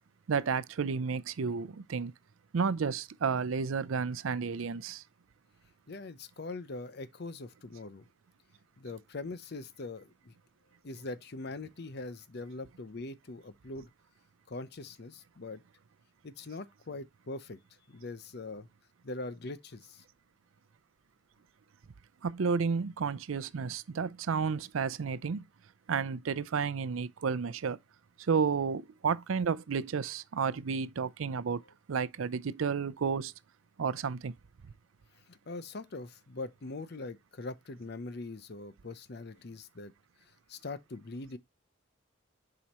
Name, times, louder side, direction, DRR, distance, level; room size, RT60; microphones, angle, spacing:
voice 1, 0.3-2.1 2.5-5.0 22.2-25.4 25.9-27.8 28.2-31.6 31.9-33.3 33.8-34.3, right 5 dB, 90° right, 0.5 m, -31 dB
voice 2, 5.9-8.0 8.8-10.3 10.8-13.9 14.5-15.6 16.2-17.6 17.9-18.7 19.0-20.0 35.3-39.9 40.5-41.4, left 3 dB, 55° left, 0.7 m, -42 dB
7.2 x 4.9 x 2.9 m
head